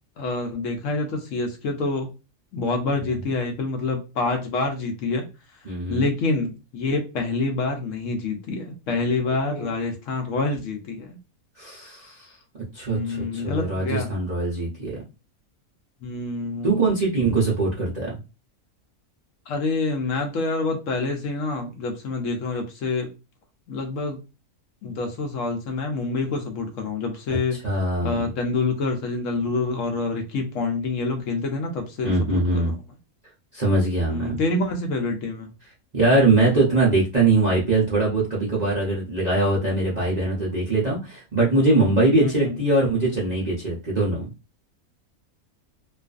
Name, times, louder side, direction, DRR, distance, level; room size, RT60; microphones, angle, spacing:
voice 1, 0.2-2.1 2.5-5.3 5.9-11.2 12.9-14.1 16.0-16.8 19.5-23.1 23.7-24.2 24.8-27.6 28.0-32.8 34.1-35.5 42.2-42.6, left 3 dB, 70° left, 3 dB, 0.9 m, -27 dB
voice 2, 5.6-6.1 9.5-9.7 11.6-12.4 12.7-15.0 16.6-18.1 27.6-28.3 32.0-32.7 33.5-34.4 35.9-44.3, right 2 dB, 45° right, -6 dB, 0.5 m, -22 dB
2.5 x 2.4 x 2.3 m, 0.28 s
omnidirectional pair, 1.5 m